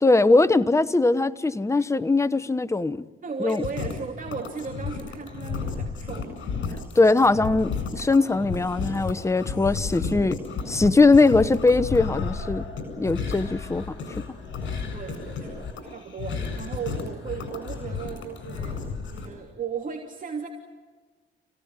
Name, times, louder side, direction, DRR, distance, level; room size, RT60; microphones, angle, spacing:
voice 1, 0.0-3.1 3.4-3.6 6.9-10.4 10.7-12.7 13.0-14.0, left 3 dB, 15° left, 1.1 m, -20 dB
voice 2, 3.2-6.3 14.9-20.5, right 6 dB, 40° right, 3.1 m, -36 dB
sound 1, 3.5-19.3, left 5 dB, 70° left, 7.7 m, -32 dB
29.0 x 17.5 x 9.8 m
cardioid pair, 90°, 20 cm